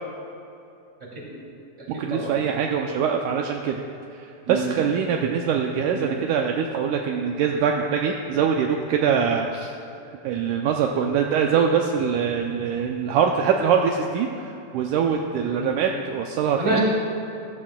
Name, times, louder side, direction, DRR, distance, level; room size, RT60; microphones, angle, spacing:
voice 1, 1.0-1.4 1.9-2.3 4.5-4.6 5.9-6.1 15.6-15.7 16.6-16.8, right 2 dB, 15° right, -5 dB, 2.1 m, -28 dB
voice 2, 1.9-3.8 4.1-9.7 10.2-16.8, right 7 dB, 80° right, 1 dB, 1.9 m, -23 dB
14.5 x 14.0 x 2.2 m, 2.7 s
omnidirectional pair, 3.9 m